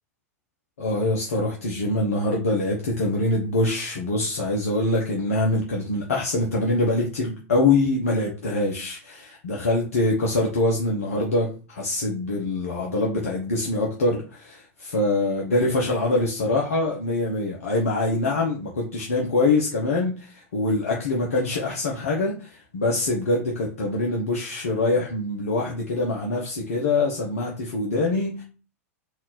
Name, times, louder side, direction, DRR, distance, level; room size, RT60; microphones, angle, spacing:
voice 1, 0.8-28.4, left 2 dB, 70° left, -2 dB, 1.0 m, -24 dB
4.2 x 2.7 x 3.9 m, 0.35 s
figure-of-eight pair, 90°, 8 cm